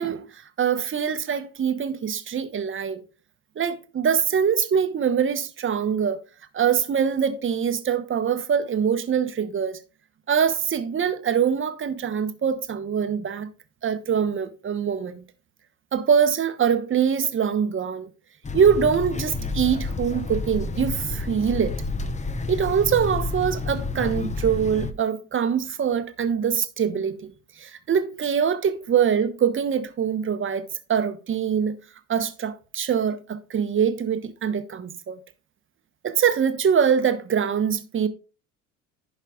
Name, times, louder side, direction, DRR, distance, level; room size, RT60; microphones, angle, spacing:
voice 1, 0.0-3.0 3.6-6.2 6.5-9.8 10.3-13.5 13.8-15.2 15.9-18.1 18.5-21.8 22.5-27.3 27.6-31.7 32.1-35.2 36.0-38.1, right 7 dB, 30° right, 1.2 m, -23 dB
sound 1, 18.4-24.9, left 3 dB, 15° left, 0.9 m, -30 dB
15.5 x 5.6 x 2.4 m
figure-of-eight pair, 65°, 43 cm